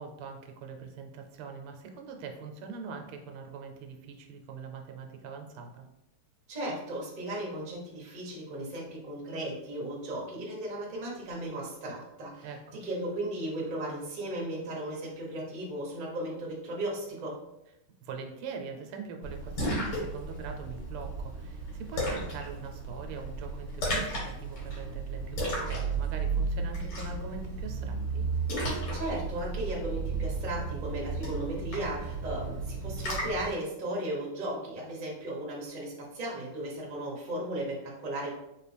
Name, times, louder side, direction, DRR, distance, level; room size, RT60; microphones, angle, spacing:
voice 1, 0.0-5.9 12.4-12.8 18.0-28.3, right 5 dB, 90° right, 4 dB, 1.6 m, -43 dB
voice 2, 6.5-17.4 28.9-38.3, right 1 dB, 35° right, -2 dB, 0.7 m, -36 dB
Splash splatter, 19.2-33.5, right 3 dB, 90° left, 2.4 m, -33 dB
4.1 x 3.1 x 3.3 m, 0.88 s
omnidirectional pair, 2.4 m